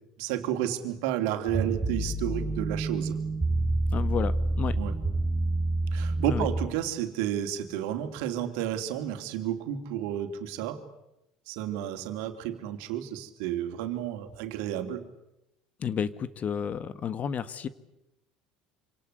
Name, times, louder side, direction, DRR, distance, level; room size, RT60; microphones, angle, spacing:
voice 1, 0.2-3.2 4.8-4.9 5.9-10.8 11.5-15.1, right 11 dB, 70° right, 7 dB, 3.2 m, -31 dB
sound 1, 1.5-6.7, right 2 dB, 5° right, 4.4 m, -28 dB
voice 2, 3.9-4.8 6.3-6.5 15.8-17.7, left 7 dB, 40° left, 15 dB, 1.8 m, -31 dB
27.0 x 26.5 x 8.3 m, 0.88 s
hypercardioid pair, 70°, 4 cm